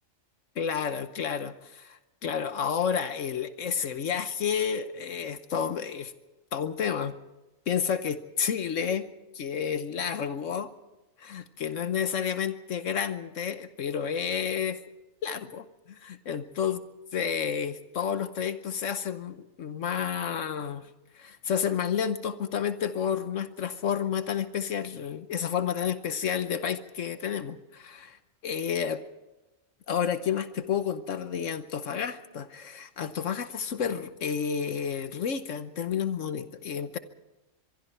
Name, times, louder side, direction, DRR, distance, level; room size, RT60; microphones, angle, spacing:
voice 1, 0.6-6.1 6.5-7.2 7.7-9.0 9.3-10.7 11.2-14.8 15.2-16.8 17.1-20.9 21.1-28.2 28.4-29.0 29.9-37.0, left 7 dB, 75° left, 11 dB, 1.3 m, -30 dB
24.5 x 23.5 x 4.5 m, 1.0 s
omnidirectional pair, 1.3 m